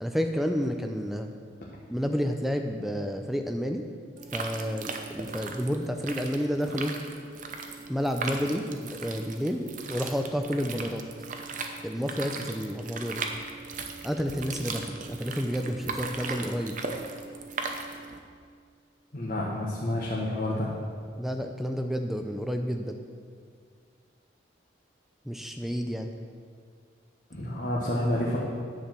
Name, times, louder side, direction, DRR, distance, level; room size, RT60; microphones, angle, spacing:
voice 1, 0.0-1.3 1.9-3.9 4.3-7.0 7.9-11.0 11.8-13.2 14.0-16.8 21.2-23.0 25.3-26.1, equal, ahead, 5 dB, 0.4 m, -30 dB
sound 1, 4.2-18.2, right 4 dB, 40° right, 0.7 m, -38 dB
voice 2, 19.1-20.7 27.3-28.4, left 1 dB, 45° left, -4 dB, 1.2 m, -29 dB
10.0 x 4.8 x 7.6 m, 2.1 s
head